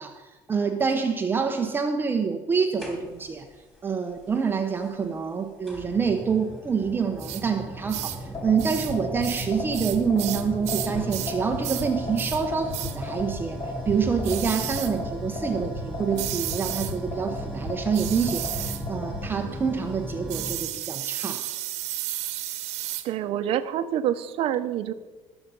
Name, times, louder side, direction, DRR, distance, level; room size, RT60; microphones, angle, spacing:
voice 1, 0.0-3.5 3.8-13.6 13.9-21.4, right 6 dB, 20° right, 5 dB, 0.8 m, -27 dB
sound 1, 2.8-3.4 4.8-4.9 5.6-20.7, right 1 dB, 5° left, 3.4 m, -37 dB
sound 2, 7.2-7.4 7.9-8.2 8.6-8.9 9.2-11.4 11.6-11.9 12.2-12.4 12.7-13.0 14.2-14.9 16.2-17.0 17.9-18.8 20.3-23.1, right 14 dB, 70° right, 1.2 m, -33 dB
sound 3, 8.3-19.3, left 2 dB, 35° left, 3.6 m, -34 dB
voice 2, 23.0-24.9, right 10 dB, 55° right, 10 dB, 0.9 m, -27 dB
19.0 x 7.1 x 5.5 m, 1.2 s
cardioid pair, 165°, 12 cm